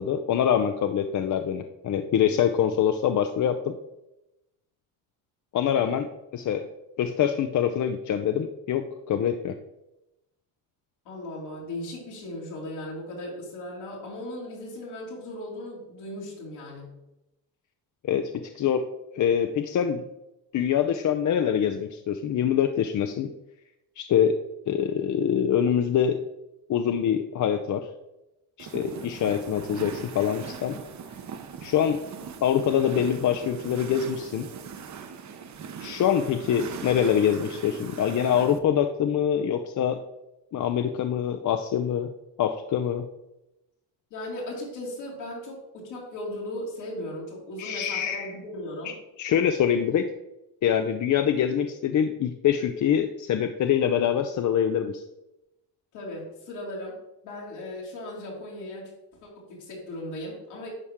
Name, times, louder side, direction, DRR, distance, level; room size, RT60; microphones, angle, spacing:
voice 1, 0.0-3.8 5.5-6.1 6.3-6.7 7.0-9.5 18.0-18.9 19.1-20.0 20.5-23.3 24.0-24.4 24.7-26.2 26.7-27.9 28.6-30.8 31.6-32.0 32.4-34.5 35.8-40.0 40.5-42.1 42.4-43.1 47.6-48.3 48.8-48.9 49.2-50.1 50.6-55.0, left 9 dB, 45° left, 7 dB, 0.6 m, -25 dB
voice 2, 11.0-16.9 36.4-36.6 44.1-48.9 55.9-57.0 57.2-58.9 59.2-60.7, left 1 dB, 80° left, -4 dB, 2.8 m, -37 dB
sound 1, 28.6-38.6, right 7 dB, 45° right, 0.9 m, -40 dB
11.0 x 4.2 x 3.7 m, 0.92 s
supercardioid pair, 85°, 41 cm